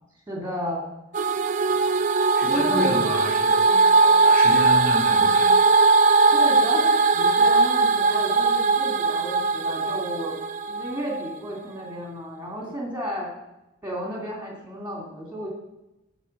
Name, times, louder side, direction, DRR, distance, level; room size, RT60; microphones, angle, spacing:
voice 1, 0.3-0.8 1.7-1.8 2.4-2.9 6.3-10.4 10.7-13.3 13.8-15.5, equal, 10° right, -2 dB, 2.5 m, -32 dB
sound 1, 1.1-11.3, right 3 dB, 35° right, 0.4 m, -20 dB
voice 2, 2.3-5.5, left 1 dB, 45° left, -3 dB, 2.7 m, -30 dB
11.5 x 4.3 x 6.6 m, 0.96 s
head